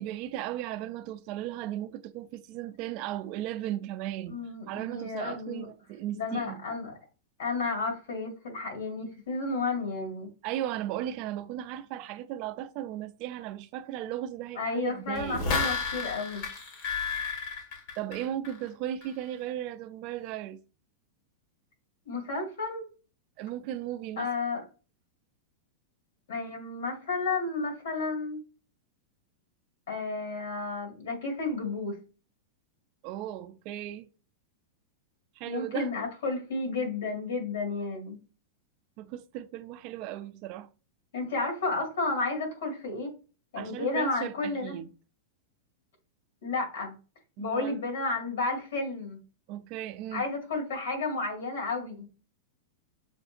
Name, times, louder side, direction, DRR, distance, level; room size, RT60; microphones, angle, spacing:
voice 1, 0.0-4.4 4.7-6.6 10.4-15.4 18.0-20.6 23.4-24.3 33.0-34.1 35.4-35.9 39.0-40.7 43.5-44.9 47.4-47.8 49.5-50.2, right 12 dB, 40° right, 0.4 m, -36 dB
voice 2, 4.3-5.7 6.1-6.9 7.4-10.3 14.6-16.4 22.1-22.9 24.2-24.6 26.3-28.4 29.9-32.0 35.4-38.2 41.1-43.1 43.5-44.8 46.4-46.9 47.4-49.2 50.1-52.1, left 3 dB, 75° left, 2.1 m, -32 dB
sound 1, 15.1-18.7 19.0-19.1, left 5 dB, 45° left, 1.5 m, -32 dB
6.4 x 2.7 x 2.5 m
supercardioid pair, 160°, 0 cm